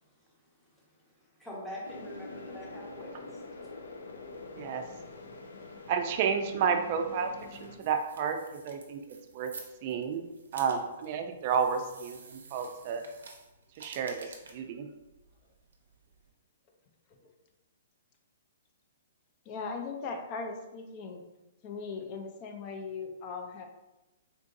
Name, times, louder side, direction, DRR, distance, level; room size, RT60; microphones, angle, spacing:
voice 1, 0.0-3.4, left 1 dB, 5° left, -5 dB, 0.9 m, -45 dB
sound 1, 1.8-7.8, left 3 dB, 90° left, 0.4 m, -46 dB
voice 2, 5.9-9.5 9.8-10.2 10.5-12.2 12.5-13.0 13.8-14.9, right 6 dB, 40° right, 5 dB, 0.4 m, -31 dB
sound 2, 7.1-16.3, right 4 dB, 90° right, 0.6 m, -52 dB
voice 3, 19.5-21.2 21.6-23.6, left 4 dB, 35° left, 4 dB, 0.5 m, -38 dB
3.8 x 2.5 x 2.5 m, 1.0 s
hypercardioid pair, 155°, 0 cm